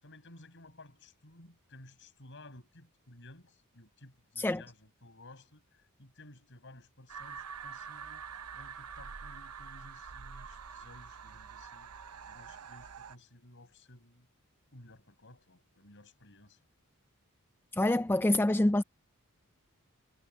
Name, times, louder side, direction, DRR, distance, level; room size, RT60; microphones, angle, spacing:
voice 1, 0.0-8.2 8.5-11.9 12.3-14.3 14.7-16.6, left 2 dB, 55° left, 7.4 m, -55 dB
sound 1, 7.1-13.2, right 6 dB, 90° right, 0.9 m, -46 dB
voice 2, 17.7-18.8, left 1 dB, 10° left, 0.4 m, -26 dB
head